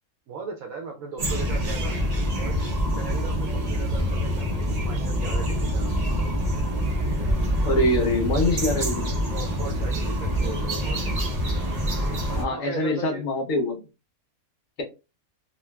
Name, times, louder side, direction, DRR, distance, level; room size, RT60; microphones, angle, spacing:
voice 1, 0.3-2.0 2.4-2.6 3.0-6.3 9.3-11.2 12.3-13.3, right 4 dB, 70° right, 1.0 m, -38 dB
sound 1, 1.2-12.4, equal, 45° right, 0.5 m, -26 dB
voice 2, 7.6-9.1 12.4-13.8, left 1 dB, 65° left, 1.3 m, -24 dB
3.6 x 2.3 x 2.2 m
omnidirectional pair, 1.6 m